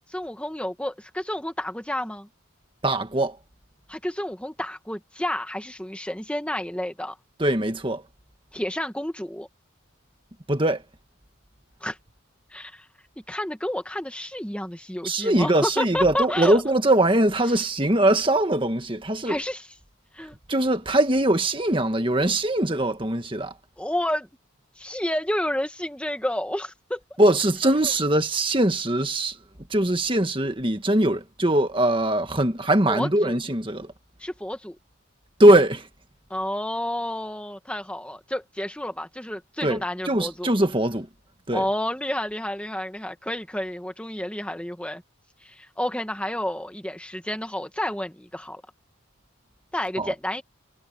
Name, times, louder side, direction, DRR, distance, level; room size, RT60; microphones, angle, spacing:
voice 1, 0.1-2.3 3.9-7.2 8.5-9.5 11.8-12.0 12.5-12.9 13.3-16.6 19.3-19.7 20.1-20.3 23.8-24.3 24.8-27.0 27.6-27.7 32.9-33.4 34.2-34.7 36.3-40.5 41.5-45.0 45.4-48.6 49.7-50.4, left 1 dB, 5° left, 1.4 m, -30 dB
voice 2, 2.8-3.4 7.4-8.0 10.5-10.8 15.0-19.4 20.5-23.5 27.2-29.4 29.7-33.9 35.4-35.9 39.6-41.1 41.5-41.7 50.0-50.1, right 1 dB, 25° right, 1.7 m, -21 dB
head